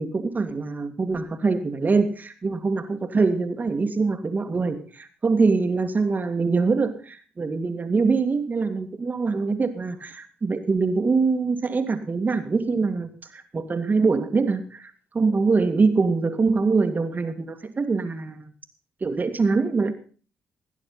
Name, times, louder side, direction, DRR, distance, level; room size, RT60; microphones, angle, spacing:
voice 1, 0.0-18.4 19.0-19.9, right 4 dB, 40° right, 8 dB, 2.3 m, -24 dB
18.0 x 9.8 x 5.7 m, 0.41 s
hypercardioid pair, 45°, 5 cm